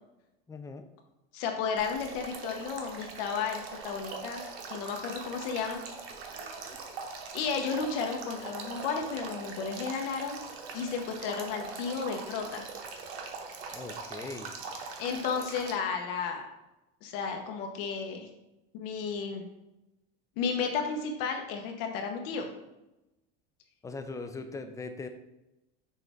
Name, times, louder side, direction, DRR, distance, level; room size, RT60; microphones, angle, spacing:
voice 1, 0.5-0.9 13.7-14.5 23.8-25.1, left 3 dB, 10° left, 7 dB, 0.4 m, -40 dB
voice 2, 1.3-5.8 7.3-10.4 10.7-12.6 15.0-16.5 17.0-18.3 18.7-19.4 20.4-22.5, left 5 dB, 70° left, 3 dB, 0.8 m, -33 dB
Male speech man speaking / Stream / Trickle dribble, 1.8-15.7, right 4 dB, 85° right, 0.9 m, -42 dB
6.3 x 2.5 x 3.4 m, 0.95 s
supercardioid pair, 110°, 29 cm